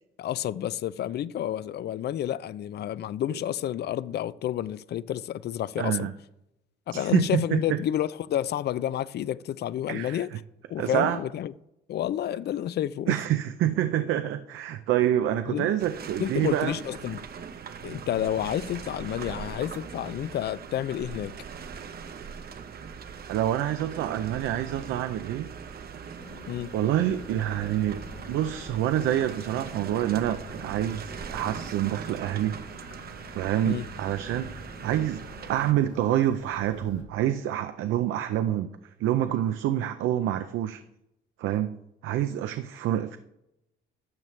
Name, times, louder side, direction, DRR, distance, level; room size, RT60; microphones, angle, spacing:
voice 1, 0.2-6.1 6.9-10.3 10.7-11.5 11.9-13.1 15.5-15.7 16.2-17.3 17.8-21.4 26.5-26.7 33.7-33.8, left 11 dB, 55° left, 0.4 m, -30 dB
voice 2, 5.8-6.1 6.9-7.8 9.9-10.3 10.8-11.2 13.1-16.7 23.3-25.5 26.7-32.6 33.3-35.2 35.5-38.7 39.0-40.8 41.4-43.2, right 12 dB, 85° right, 0.5 m, -27 dB
sound 1, 15.8-35.7, right 6 dB, 50° right, 0.8 m, -41 dB
sound 2, 26.2-37.0, left 1 dB, 85° left, 3.6 m, -46 dB
12.0 x 7.3 x 3.2 m
cardioid pair, 90°, 20 cm